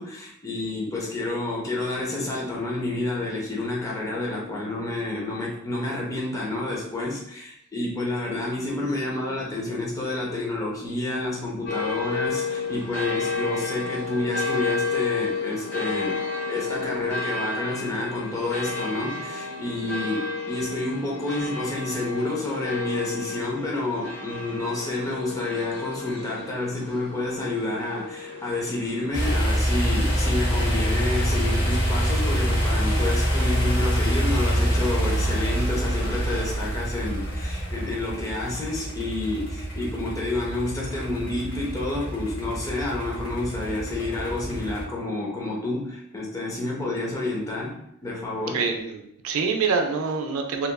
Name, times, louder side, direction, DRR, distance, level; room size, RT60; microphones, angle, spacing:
voice 1, 0.0-16.2 16.5-48.6, left 2 dB, 15° left, -3 dB, 0.5 m, -29 dB
sound 1, 11.7-31.1, left 4 dB, 55° left, 1.0 m, -32 dB
sound 2, 29.1-44.8, equal, 85° left, 0.9 m, -26 dB
voice 2, 48.5-50.7, right 5 dB, 75° right, 4 dB, 0.4 m, -26 dB
2.8 x 2.3 x 2.2 m, 0.74 s
head